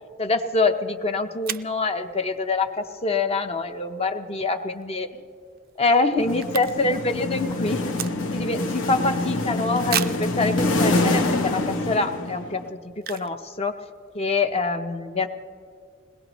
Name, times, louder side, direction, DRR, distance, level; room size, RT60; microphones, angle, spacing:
voice 1, 0.2-5.1 5.8-7.8 8.3-13.7 14.1-15.3, left 3 dB, 30° left, 7 dB, 0.7 m, -25 dB
sound 1, 0.8-0.9 1.4-1.8 4.7-5.0 5.3-5.4 5.6-7.1 7.3-8.6 9.0-9.1 9.9-10.3 11.0-11.1 11.6-11.8 13.0-13.4 13.7-13.8 14.0-14.3, right 11 dB, 50° right, 0.4 m, -32 dB
sound 2, 6.2-12.7, left 2 dB, 75° left, 1.1 m, -25 dB
21.5 x 18.5 x 3.1 m, 2.2 s
head